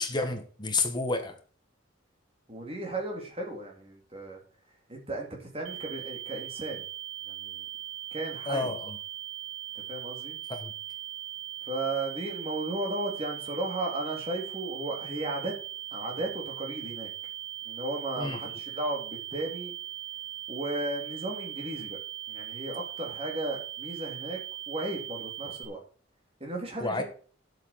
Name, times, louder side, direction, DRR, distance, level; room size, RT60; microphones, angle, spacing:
voice 1, 0.0-1.4 8.4-9.0 10.5-10.7 18.2-18.4 26.8-27.0, left 3 dB, 25° left, 6 dB, 1.6 m, -30 dB
voice 2, 2.5-4.4 4.9-6.8 7.3-7.7 8.1-8.7 9.9-10.4 11.7-15.6 15.9-17.1 17.6-19.7 20.5-22.0 22.3-24.4 24.7-25.8 26.4-27.0, right 2 dB, 30° right, 0 dB, 3.7 m, -35 dB
sound 1, 5.7-25.7, right 12 dB, 70° right, 2.0 m, -40 dB
9.8 x 8.2 x 6.2 m, 0.42 s
head